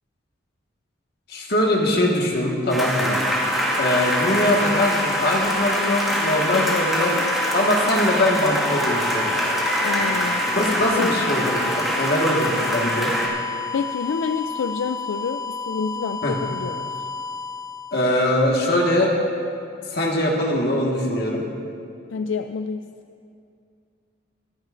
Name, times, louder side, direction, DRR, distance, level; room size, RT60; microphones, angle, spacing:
voice 1, 1.3-3.2 3.8-7.1 7.5-9.4 10.5-13.1 16.2-16.4 17.9-19.1 19.9-21.5, left 1 dB, 55° left, -1 dB, 1.6 m, -22 dB
sound 1, 2.7-13.3, equal, ahead, 1.7 m, -24 dB
sound 2, 3.0-18.8, left 5 dB, 20° left, 0.4 m, -31 dB
voice 2, 9.8-11.1 13.7-16.9 22.1-22.8, left 5 dB, 75° left, 8 dB, 0.4 m, -28 dB
25.0 x 10.5 x 2.5 m, 2.4 s
head